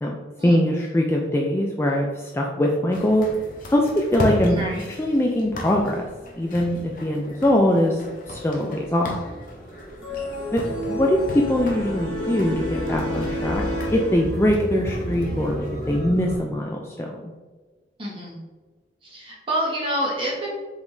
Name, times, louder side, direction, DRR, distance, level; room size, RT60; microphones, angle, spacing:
voice 1, 0.4-3.3 3.7-6.1 6.4-8.0 8.3-9.2 10.5-13.6 13.9-17.1, left 1 dB, 15° left, -1 dB, 0.3 m, -22 dB
sound 1, 2.9-16.0, equal, 45° left, 0.7 m, -36 dB
voice 2, 4.5-4.9 18.0-18.4 19.0-20.5, equal, 30° right, -4 dB, 1.3 m, -28 dB
sound 2, 9.4-16.4, equal, 65° right, 0.8 m, -34 dB
sound 3, 10.0-14.7, left 1 dB, 85° left, 1.4 m, -30 dB
4.9 x 3.7 x 2.6 m, 1.3 s
head